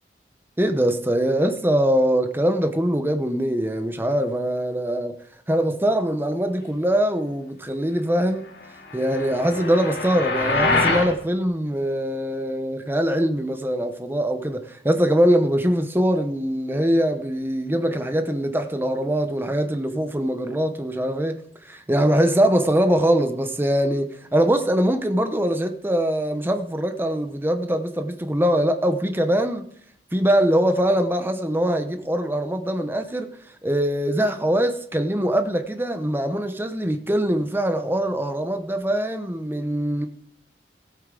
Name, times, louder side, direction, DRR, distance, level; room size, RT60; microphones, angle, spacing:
voice 1, 0.6-5.2 5.5-8.5 8.9-29.7 30.1-33.3 33.6-40.1, equal, 15° right, 0.8 m, -22 dB
sound 1, 8.9-11.1, left 3 dB, 70° left, 2.1 m, -24 dB
16.0 x 8.4 x 3.8 m
head